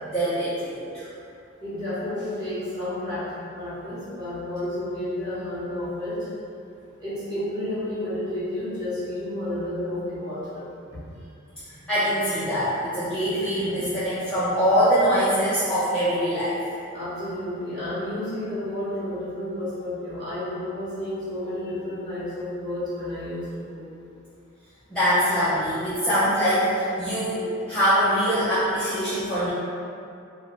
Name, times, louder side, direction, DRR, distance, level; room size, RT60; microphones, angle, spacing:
voice 1, 0.0-1.1 11.6-16.6 24.9-29.5, equal, 5° left, -15 dB, 0.4 m, -23 dB
voice 2, 1.6-6.3 7.0-10.6 10.9-11.0 16.9-23.8, left 1 dB, 20° right, -12 dB, 0.9 m, -31 dB
2.7 x 2.0 x 3.2 m, 2.5 s
head